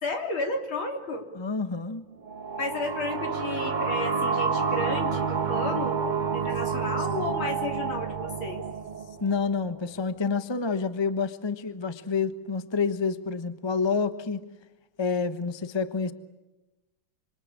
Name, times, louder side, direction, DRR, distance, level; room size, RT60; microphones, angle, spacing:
voice 1, 0.0-1.3 2.6-8.6, left 2 dB, 70° left, 4 dB, 4.0 m, -32 dB
voice 2, 1.3-2.0 9.2-14.4 15.0-16.1, left 5 dB, 20° left, 11 dB, 0.8 m, -28 dB
sound 1, 2.2-9.7, right 5 dB, 35° right, 0.8 m, -29 dB
26.5 x 26.5 x 8.6 m, 1.1 s
omnidirectional pair, 2.3 m